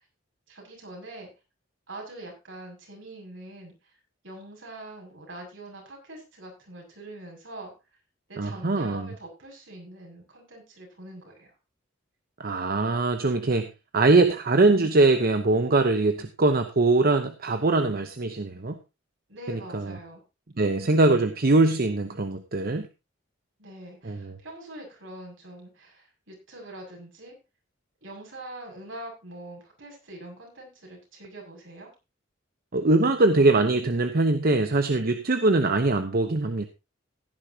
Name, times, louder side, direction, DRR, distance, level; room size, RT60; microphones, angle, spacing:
voice 1, 0.5-1.3 1.9-3.9 4.2-7.7 8.3-11.5 19.3-20.2 23.6-27.3 28.0-31.9, right 1 dB, 75° right, 1 dB, 6.5 m, -43 dB
voice 2, 8.4-9.1 12.4-13.7 13.9-18.8 19.5-20.0 20.6-22.9 24.0-24.3 32.7-36.7, right 2 dB, 50° right, 8 dB, 0.9 m, -22 dB
16.0 x 10.5 x 2.8 m, 0.26 s
head